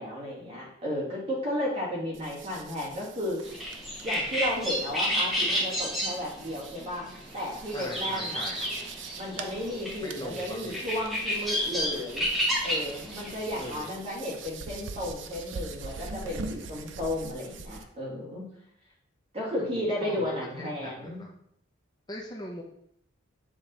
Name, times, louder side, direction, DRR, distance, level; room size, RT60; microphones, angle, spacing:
voice 1, 0.0-3.4 4.0-8.5 9.1-12.3 12.6-18.4 19.3-21.2, left 1 dB, 30° right, -5 dB, 2.2 m, -33 dB
sound 1, 2.1-17.8, right 4 dB, 65° right, 0.5 m, -44 dB
sound 2, 3.4-13.8, equal, ahead, 1.2 m, -31 dB
voice 2, 7.7-8.6 10.0-10.8 13.5-14.0 19.6-21.3 22.1-22.6, left 1 dB, 20° left, -1 dB, 0.6 m, -41 dB
7.0 x 3.7 x 4.1 m, 0.71 s
head